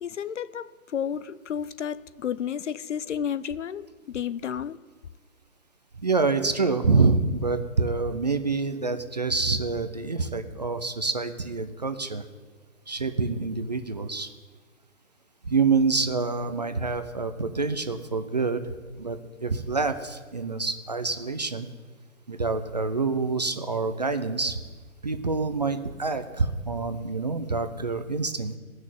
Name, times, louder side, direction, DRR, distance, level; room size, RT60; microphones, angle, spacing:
voice 1, 0.0-4.8, left 8 dB, 60° left, 0.6 m, -32 dB
voice 2, 6.0-12.2 12.9-14.3 15.4-18.6 18.9-21.7 22.3-24.6 25.0-28.6, right 4 dB, 30° right, 0.5 m, -26 dB
17.0 x 6.3 x 9.1 m
hypercardioid pair, 165°, 42 cm